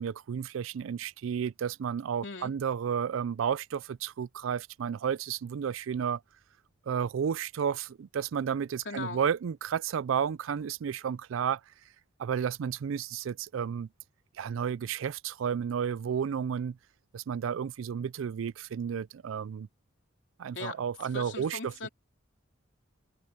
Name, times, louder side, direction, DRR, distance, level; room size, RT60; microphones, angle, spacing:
voice 1, 0.0-6.2 6.9-11.6 12.2-13.9 14.4-16.8 17.1-19.7 20.4-21.6, right 7 dB, 85° right, 0.4 m, -32 dB
voice 2, 2.2-2.5 8.8-9.2 20.5-21.9, left 4 dB, 65° left, 3.5 m, -39 dB
head